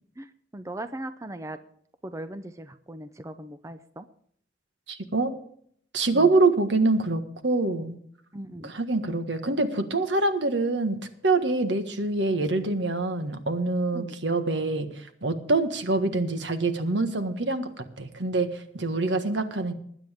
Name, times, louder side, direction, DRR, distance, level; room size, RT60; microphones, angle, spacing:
voice 1, 0.2-1.6 2.0-4.1 6.1-6.3 8.3-8.7 13.9-14.2, right 1 dB, 15° right, 10 dB, 0.6 m, -38 dB
voice 2, 4.9-5.3 5.9-8.0 8.6-14.9 15.2-19.7, right 3 dB, 70° right, 8 dB, 1.6 m, -25 dB
20.5 x 9.1 x 3.6 m, 0.63 s
head